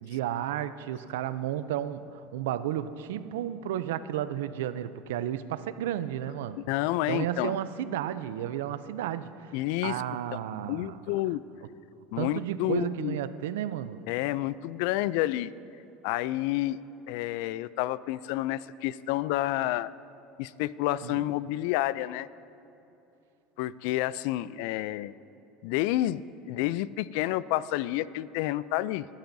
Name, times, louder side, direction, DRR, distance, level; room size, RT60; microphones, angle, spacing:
voice 1, 0.0-6.6 7.1-9.5 9.8-11.0 12.2-14.0 21.0-21.2, right 11 dB, 90° right, 14 dB, 0.4 m, -32 dB
voice 2, 6.6-7.6 9.5-10.0 10.3-10.4 10.7-11.4 12.1-13.2 14.1-15.5 16.0-16.8 17.1-19.9 20.4-22.3 23.6-25.1 25.6-26.2 26.5-29.1, left 15 dB, 70° left, 18 dB, 0.3 m, -29 dB
21.0 x 11.5 x 2.7 m, 2.9 s
supercardioid pair, 120°, 0 cm